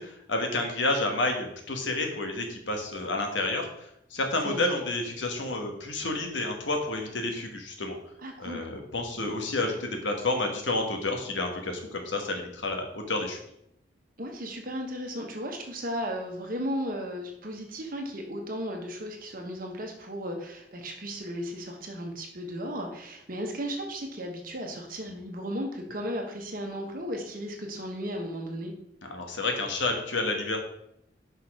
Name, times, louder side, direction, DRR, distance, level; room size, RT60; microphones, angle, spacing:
voice 1, 0.0-8.0 8.4-13.4 29.0-30.6, left 2 dB, 80° left, 3 dB, 1.4 m, -30 dB
voice 2, 8.2-8.7 14.2-28.7, equal, 50° right, 3 dB, 1.3 m, -35 dB
6.0 x 5.6 x 4.8 m, 0.75 s
head